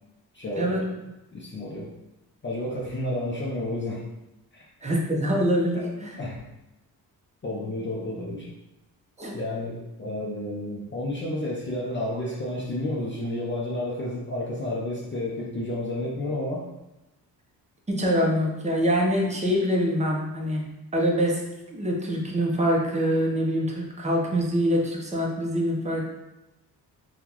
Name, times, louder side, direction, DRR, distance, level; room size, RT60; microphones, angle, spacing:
voice 1, 0.3-0.9 1.3-1.9 2.4-4.0 4.5-4.7 5.7-5.9 6.2-6.4 7.4-8.5 9.3-16.7, left 1 dB, 30° left, -4 dB, 0.6 m, -31 dB
voice 2, 4.8-6.2 9.2-9.4 17.9-20.6 20.9-21.4 21.7-26.1, equal, 15° right, -1 dB, 0.7 m, -24 dB
3.7 x 2.3 x 3.0 m, 0.97 s
cardioid pair, 80°, 40 cm